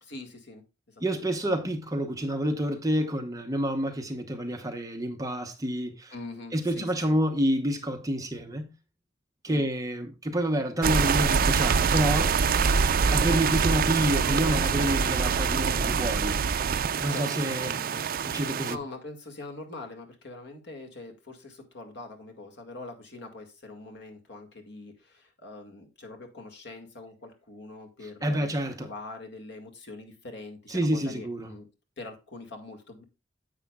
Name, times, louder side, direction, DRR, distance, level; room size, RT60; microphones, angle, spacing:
voice 1, 0.0-1.3 6.1-7.2 9.5-9.7 17.1-18.0 18.7-28.5 28.8-31.7 32.0-33.0, left 2 dB, 65° left, 2.0 m, -43 dB
voice 2, 1.0-6.1 6.5-8.7 9.4-12.4 13.1-16.4 17.0-17.7 18.3-18.8 28.2-28.9 30.7-31.5, equal, 20° right, 0.9 m, -28 dB
sound 1, 10.8-18.8, right 5 dB, 50° right, 0.4 m, -25 dB
10.0 x 8.3 x 2.3 m
head